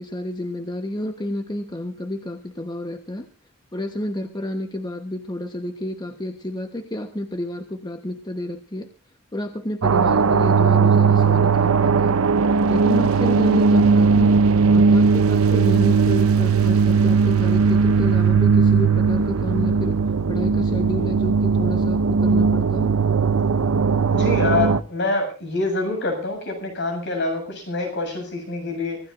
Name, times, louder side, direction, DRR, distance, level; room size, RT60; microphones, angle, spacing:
voice 1, 0.0-3.3 3.7-8.9 9.3-12.2 12.7-14.3 14.7-20.0 20.3-23.0, left 1 dB, 20° left, 6 dB, 1.1 m, -30 dB
sound 1, 9.8-24.8, right 5 dB, 85° right, 0.7 m, -18 dB
voice 2, 24.1-29.0, left 2 dB, 55° left, 4 dB, 7.4 m, -26 dB
25.0 x 15.5 x 2.6 m, 0.33 s
head